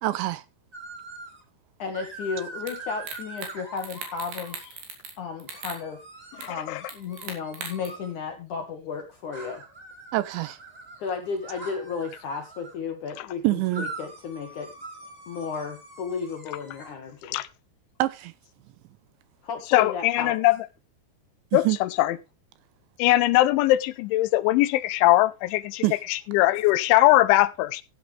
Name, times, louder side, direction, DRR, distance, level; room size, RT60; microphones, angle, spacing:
voice 1, 0.0-0.4 10.1-10.6 13.4-13.9 18.0-18.3 21.5-21.8 25.8-26.0, right 17 dB, 80° right, 2.9 m, -25 dB
sound 1, 0.7-1.4 1.9-4.7 5.5-8.1 9.3-12.8 13.7-16.9, right 2 dB, 10° right, 4.8 m, -43 dB
voice 2, 1.8-4.7 5.2-6.0 6.5-9.6 11.0-14.7 15.3-17.4 19.4-20.3, left 5 dB, 65° left, 2.0 m, -34 dB
sound 2, 2.7-2.8 3.1-3.5 3.8-5.1 5.4-5.8 6.4-6.5 6.9-7.9, right 5 dB, 55° right, 5.0 m, -38 dB
voice 3, 19.7-20.6 21.5-21.7 22.0-22.1 23.0-25.8 26.1-27.8, left 17 dB, 80° left, 3.1 m, -20 dB
15.0 x 9.4 x 3.4 m
omnidirectional pair, 5.5 m